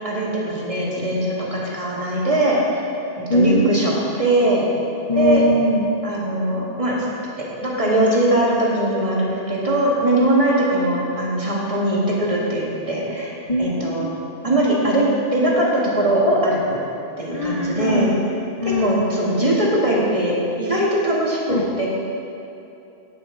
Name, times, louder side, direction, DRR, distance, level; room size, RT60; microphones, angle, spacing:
voice 1, 0.0-2.8 3.3-4.7 5.1-5.4 6.0-7.0 7.4-13.3 13.6-14.1 14.4-16.8 17.2-18.1 18.6-21.9, right 1 dB, 30° right, -5 dB, 1.7 m, -21 dB
voice 2, 3.3-3.7 5.1-5.9 13.5-14.2 17.3-18.1 18.6-19.0 21.5-21.6, left 1 dB, 40° left, -2 dB, 0.7 m, -21 dB
9.5 x 9.3 x 3.8 m, 2.8 s
omnidirectional pair, 1.1 m